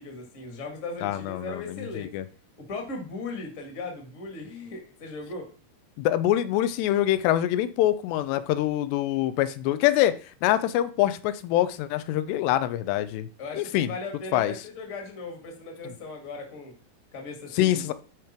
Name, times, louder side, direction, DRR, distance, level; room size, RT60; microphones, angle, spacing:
voice 1, 0.0-2.1 2.6-5.5 13.4-16.7 17.1-17.9, left 3 dB, 30° left, 1.4 m, -38 dB
voice 2, 1.0-2.3 6.0-10.1 10.4-13.3 13.5-13.9 14.3-14.5 15.8-15.9 17.6-17.9, left 13 dB, 90° left, 2.8 m, -25 dB
11.0 x 5.2 x 4.5 m
omnidirectional pair, 4.8 m